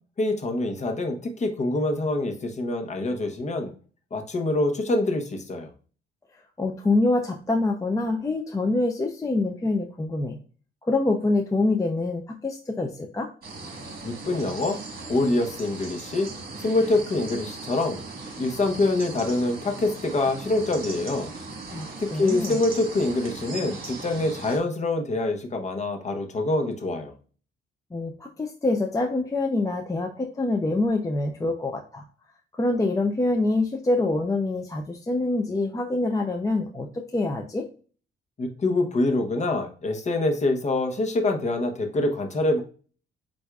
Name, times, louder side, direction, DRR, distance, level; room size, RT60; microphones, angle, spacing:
voice 1, 0.2-3.7 4.1-5.7 14.0-14.8 15.1-16.3 16.6-18.0 18.4-21.3 22.0-27.1 38.4-42.6, left 2 dB, 35° left, 4 dB, 1.0 m, -25 dB
voice 2, 6.6-10.4 10.8-13.3 21.7-22.6 27.9-32.0 32.5-37.6, left 2 dB, 15° left, 2 dB, 0.5 m, -25 dB
sound 1, 13.4-24.6, right 3 dB, 50° right, 1.5 m, -38 dB
7.9 x 2.6 x 2.3 m, 0.39 s
cardioid pair, 90°, 20 cm